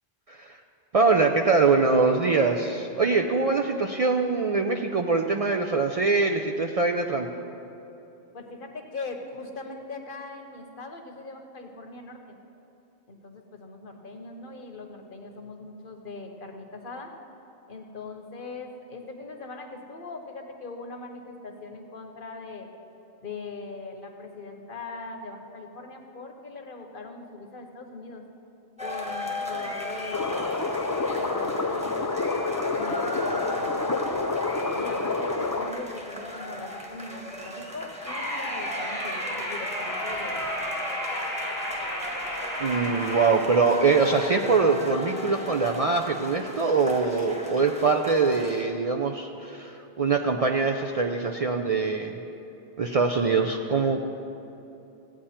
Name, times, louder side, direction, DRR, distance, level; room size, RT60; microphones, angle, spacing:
voice 1, 0.3-0.6 0.9-7.3 42.6-52.2 52.8-54.0, right 4 dB, 50° right, 2 dB, 0.5 m, -23 dB
voice 2, 8.3-12.4 13.1-17.1 17.7-22.7 23.2-28.2 28.8-30.4 31.2-32.1 32.7-34.1 34.7-40.6, left 3 dB, 60° left, 4 dB, 1.1 m, -40 dB
sound 1, 28.8-48.6, left 1 dB, 5° right, 1.2 m, -37 dB
sound 2, 30.1-35.7, left 3 dB, 30° left, 0.3 m, -28 dB
sound 3, 38.0-43.3, equal, 80° right, 3.6 m, -32 dB
15.5 x 8.9 x 4.3 m, 2.9 s
omnidirectional pair, 1.0 m